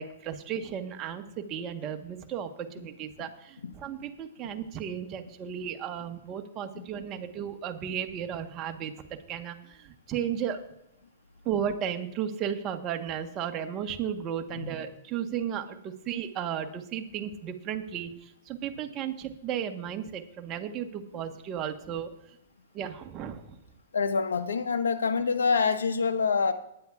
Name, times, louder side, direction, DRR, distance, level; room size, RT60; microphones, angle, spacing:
voice 1, 0.0-10.6 11.4-22.1 22.7-23.5, right 9 dB, 30° right, 6 dB, 1.2 m, -34 dB
voice 2, 23.9-26.5, left 5 dB, 90° left, 9 dB, 1.0 m, -26 dB
19.5 x 9.8 x 2.4 m, 0.82 s
hypercardioid pair, 130°, 0 cm